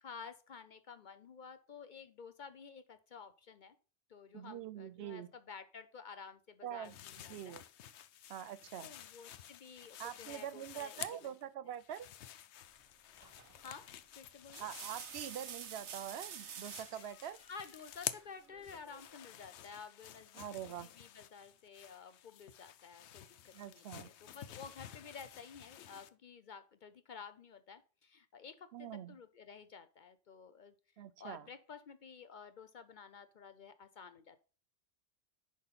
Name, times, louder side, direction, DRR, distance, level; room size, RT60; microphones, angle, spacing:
voice 1, 0.0-3.8 4.1-7.6 8.8-11.3 13.6-13.9 14.2-14.7 17.5-34.4, left 6 dB, 55° left, 0.6 m, -52 dB
voice 2, 4.3-5.3 6.6-6.9 7.3-7.6 8.3-8.9 10.0-12.1 14.6-17.4 20.4-20.9 23.5-24.1 28.7-29.2 31.0-31.5, right 10 dB, 70° right, 0.8 m, -44 dB
sound 1, 6.8-11.4 11.7-15.9 16.2-26.1, left 11 dB, 80° left, 0.9 m, -50 dB
sound 2, 12.6-19.1, left 2 dB, 35° left, 1.7 m, -68 dB
sound 3, 13.4-13.7 14.3-17.0 18.5-19.1, right 7 dB, 90° right, 1.2 m, -48 dB
10.5 x 3.7 x 5.6 m
omnidirectional pair, 1.1 m